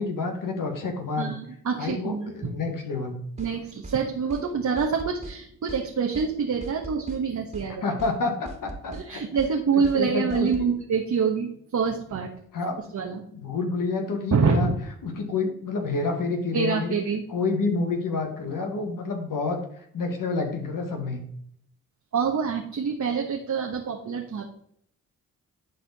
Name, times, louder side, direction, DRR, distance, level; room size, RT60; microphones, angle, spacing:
voice 1, 0.0-1.3 1.8-3.2 7.8-9.2 9.7-10.7 12.5-12.7 13.3-14.7 15.0-17.0 17.3-21.3, left 3 dB, 60° left, 4 dB, 2.0 m, -28 dB
voice 2, 1.2-2.4 3.4-7.8 8.9-12.3 12.9-13.2 14.3-14.8 16.5-17.2 22.1-24.4, right 5 dB, 50° right, 1 dB, 1.3 m, -26 dB
sound 1, 3.4-3.5 3.8-4.0 4.3-4.5 4.8-5.4 5.7-5.8 6.1-6.3 6.6-7.2 7.5-7.7 8.0-8.2 8.5-9.1 9.4-9.5 9.8-10.0 10.3-10.7, right 2 dB, 15° right, 2.1 m, -40 dB
11.0 x 4.2 x 4.2 m, 0.67 s
hypercardioid pair, 45°, 37 cm